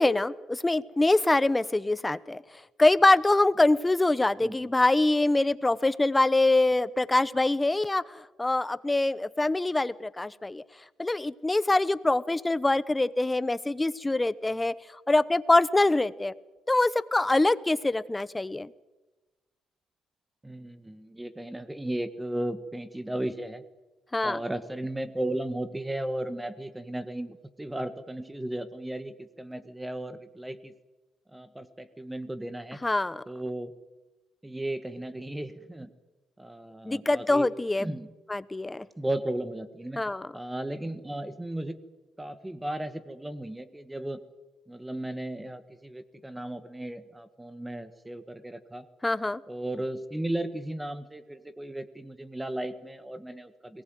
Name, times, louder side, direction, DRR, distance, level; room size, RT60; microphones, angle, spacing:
voice 1, 0.0-2.4 2.8-10.6 11.0-14.7 15.1-16.3 16.7-18.7 24.1-24.4 32.8-33.2 36.9-37.9 38.3-38.9 40.0-40.3 49.0-49.4, left 2 dB, 15° left, 17 dB, 0.9 m, -24 dB
voice 2, 4.4-4.7 20.4-23.6 24.2-30.7 31.3-32.8 33.3-33.7 34.4-35.9 36.4-37.5 37.8-38.1 39.0-40.0 40.3-41.8 42.2-44.2 44.7-48.9 49.5-53.8, right 1 dB, 10° right, 13 dB, 1.5 m, -35 dB
22.5 x 19.5 x 9.3 m, 1.1 s
cardioid pair, 90°, 0 cm